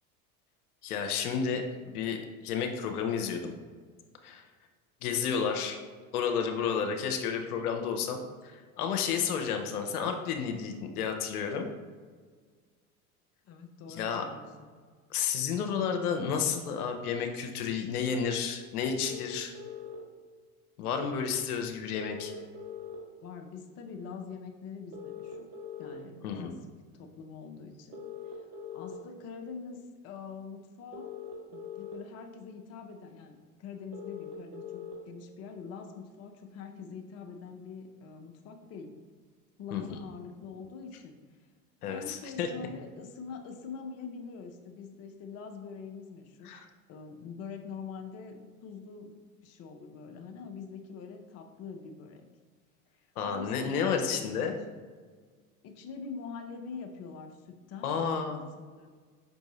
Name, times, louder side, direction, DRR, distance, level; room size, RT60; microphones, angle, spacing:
voice 1, 0.8-3.5 4.2-4.4 5.0-5.8 6.1-11.7 14.0-14.2 15.1-19.5 20.8-22.3 26.2-26.5 39.7-40.0 41.8-42.5 46.4-46.6 53.2-54.5 57.8-58.4, left 6 dB, 80° left, 5 dB, 0.6 m, -31 dB
voice 2, 13.4-14.7 23.2-25.5 25.8-26.6 26.9-28.5 28.7-31.1 31.5-39.0 39.6-41.4 41.9-49.1 49.4-52.3 52.9-54.6 55.6-58.0 58.6-58.9, left 5 dB, 35° left, 4 dB, 0.6 m, -44 dB
sound 1, 19.0-20.0 21.9-23.0 24.9-25.9 27.9-28.9 30.9-31.9 33.9-34.9, left 7 dB, 70° right, 1.0 m, -42 dB
5.3 x 2.6 x 3.0 m, 1.5 s
hypercardioid pair, 80°, 44 cm